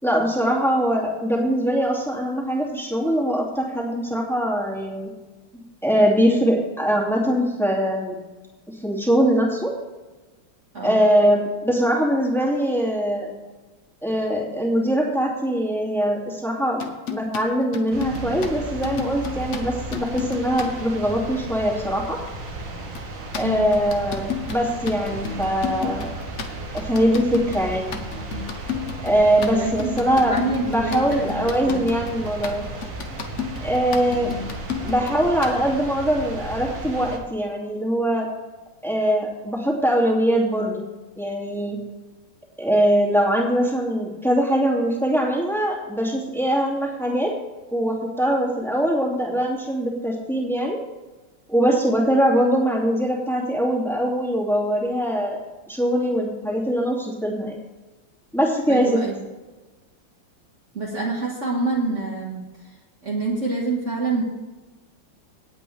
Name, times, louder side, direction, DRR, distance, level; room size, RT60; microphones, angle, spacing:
voice 1, 0.0-5.1 5.5-8.2 8.8-9.7 10.8-13.3 14.0-22.2 23.3-26.1 26.7-28.0 29.0-32.6 33.6-34.3 34.8-38.3 38.8-40.9 41.2-41.8 42.6-47.3 47.7-50.8 51.5-55.4 55.7-57.6 58.3-59.0, equal, ahead, -3 dB, 2.4 m, -22 dB
voice 2, 10.7-11.1 23.4-23.7 29.5-31.8 58.7-59.1 60.7-62.4 63.0-64.2, right 3 dB, 40° right, -3 dB, 1.9 m, -27 dB
sound 1, 16.8-20.7 22.9-35.6, left 7 dB, 45° left, 1.2 m, -32 dB
sound 2, 17.9-37.2, right 2 dB, 80° right, 2.3 m, -34 dB
18.0 x 8.4 x 3.4 m, 1.2 s
omnidirectional pair, 2.0 m